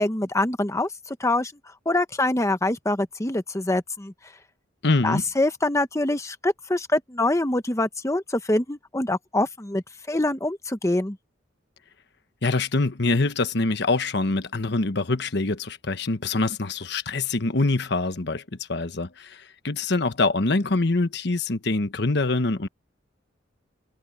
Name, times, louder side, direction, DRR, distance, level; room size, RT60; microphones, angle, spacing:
voice 1, 0.0-1.5 1.9-4.1 5.0-11.2, left 2 dB, 15° left, 0.9 m, -25 dB
voice 2, 4.8-5.2 12.4-18.4 18.7-22.7, left 3 dB, 65° left, 1.2 m, -24 dB
head